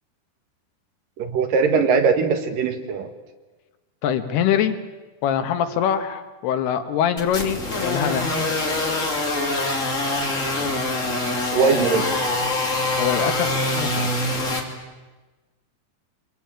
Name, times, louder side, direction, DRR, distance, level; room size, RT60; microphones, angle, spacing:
voice 1, 1.2-3.1 11.5-12.1, right 5 dB, 65° right, 6 dB, 3.2 m, -20 dB
voice 2, 4.0-4.8 5.2-8.3 13.0-14.3, left 9 dB, 85° left, 8 dB, 3.5 m, -24 dB
sound 1, 7.2-14.6, left 2 dB, 20° left, 2.7 m, -24 dB
26.0 x 21.0 x 8.9 m, 1.2 s
omnidirectional pair, 4.5 m